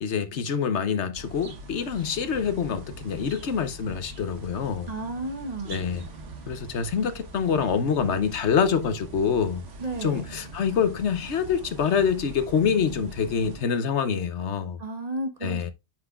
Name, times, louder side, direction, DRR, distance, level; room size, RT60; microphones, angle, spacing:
voice 1, 0.0-4.9 5.6-6.1 6.5-9.6 10.0-14.8 15.4-15.7, left 6 dB, 75° left, 1.1 m, -26 dB
sound 1, 1.1-13.6, right 2 dB, 90° right, 1.6 m, -43 dB
voice 2, 4.9-5.8 9.8-10.2 14.8-15.7, right 2 dB, 35° right, 1.2 m, -33 dB
9.0 x 5.9 x 2.3 m
omnidirectional pair, 1.2 m